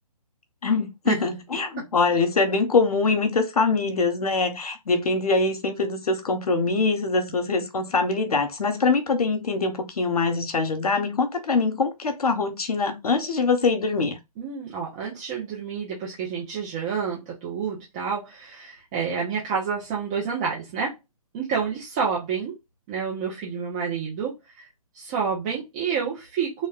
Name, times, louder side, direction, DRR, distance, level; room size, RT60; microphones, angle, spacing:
voice 1, 0.6-14.2, left 4 dB, 75° left, 0.9 m, -23 dB
voice 2, 14.4-20.9 21.3-22.5 22.9-24.6 24.9-26.7, right 6 dB, 10° right, 0.4 m, -29 dB
3.5 x 2.0 x 2.4 m
hypercardioid pair, 150°, 19 cm